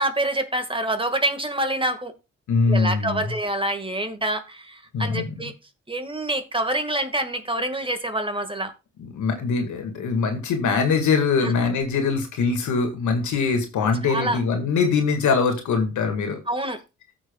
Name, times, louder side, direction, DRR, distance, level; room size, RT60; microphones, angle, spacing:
voice 1, 0.0-2.1 2.7-5.5 5.9-8.7 11.4-11.5 14.0-14.4 16.5-16.8, right 1 dB, 15° right, 1.6 m, -26 dB
voice 2, 2.5-3.2 4.9-5.3 9.0-16.4, left 4 dB, 75° left, 1.8 m, -22 dB
14.5 x 6.1 x 2.3 m
supercardioid pair, 45°, 30 cm